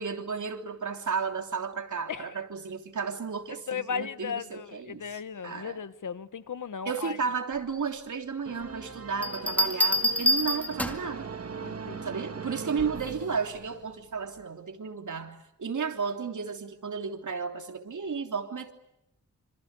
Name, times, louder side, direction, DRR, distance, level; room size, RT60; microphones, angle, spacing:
voice 1, 0.0-5.8 6.8-11.3 12.0-18.7, right 5 dB, 75° right, 3.3 m, -33 dB
voice 2, 3.7-7.2 11.6-12.3, left 7 dB, 80° left, 1.2 m, -36 dB
sound 1, 8.5-14.1, right 5 dB, 50° right, 1.9 m, -41 dB
sound 2, 9.2-11.2 12.8-13.1, equal, 5° left, 2.2 m, -26 dB
27.0 x 26.5 x 8.3 m
wide cardioid pair, 120°, 31 cm